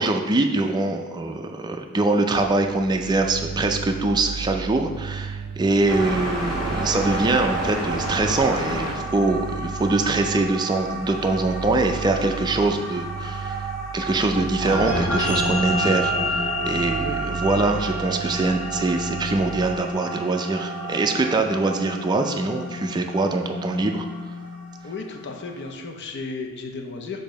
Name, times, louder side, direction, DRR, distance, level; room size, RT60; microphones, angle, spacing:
voice 1, 0.0-13.7 13.9-24.1, right 2 dB, 20° right, 4 dB, 0.4 m, -23 dB
sound 1, 2.3-19.8, right 6 dB, 65° right, 0.5 m, -35 dB
sound 2, 5.9-25.7, right 2 dB, 5° left, 1.5 m, -33 dB
sound 3, 14.6-25.2, left 1 dB, 70° left, 1.5 m, -29 dB
voice 2, 24.8-27.2, left 3 dB, 50° left, 3 dB, 0.6 m, -34 dB
6.7 x 2.7 x 5.1 m, 1.4 s
head